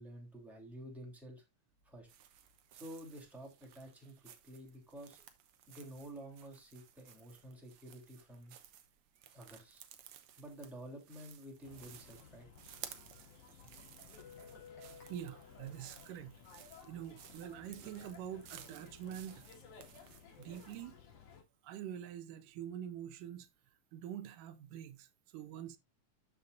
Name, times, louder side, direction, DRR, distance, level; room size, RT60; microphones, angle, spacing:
voice 1, 0.0-1.4 1.8-2.1 2.7-5.2 5.7-8.6 9.3-9.8 10.4-12.5, right 1 dB, ahead, 2.7 m, -51 dB
sound 1, 2.1-20.9, right 10 dB, 70° right, 1.3 m, -57 dB
sound 2, 11.6-21.4, left 6 dB, 70° left, 3.3 m, -57 dB
Guitar, 13.8-16.6, left 5 dB, 50° left, 4.5 m, -57 dB
voice 2, 15.1-16.4 16.8-19.5 20.4-21.0 21.6-23.5 23.9-25.8, right 10 dB, 85° right, 2.3 m, -45 dB
12.5 x 5.7 x 2.5 m
omnidirectional pair, 3.6 m